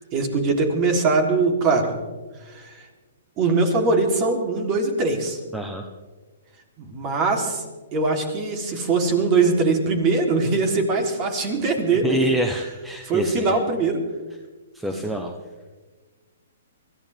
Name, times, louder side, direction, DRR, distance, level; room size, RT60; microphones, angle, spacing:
voice 1, 0.1-1.9 2.5-2.7 3.4-5.4 6.8-7.6 7.9-12.2 13.0-14.0 14.9-15.0, right 3 dB, 30° right, 3 dB, 3.5 m, -22 dB
voice 2, 5.5-5.8 12.0-13.6 14.7-15.4, equal, 5° right, 3 dB, 1.1 m, -26 dB
23.5 x 15.0 x 3.6 m, 1.3 s
hypercardioid pair, 140°, 0 cm